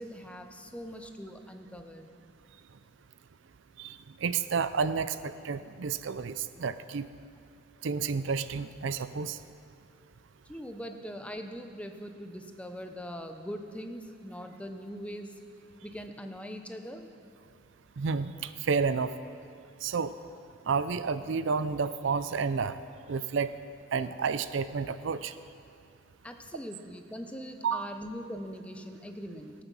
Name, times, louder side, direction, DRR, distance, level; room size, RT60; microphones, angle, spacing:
voice 1, 0.0-2.1 10.5-15.4 15.8-17.1 26.2-29.5, equal, 5° left, 6 dB, 0.6 m, -41 dB
voice 2, 3.8-7.1 7.8-9.4 18.0-19.1 19.8-20.1 20.7-22.8 23.1-23.5 23.9-25.3 27.6-27.9, right 5 dB, 65° right, 13 dB, 0.4 m, -30 dB
16.5 x 9.0 x 6.1 m, 2.4 s
head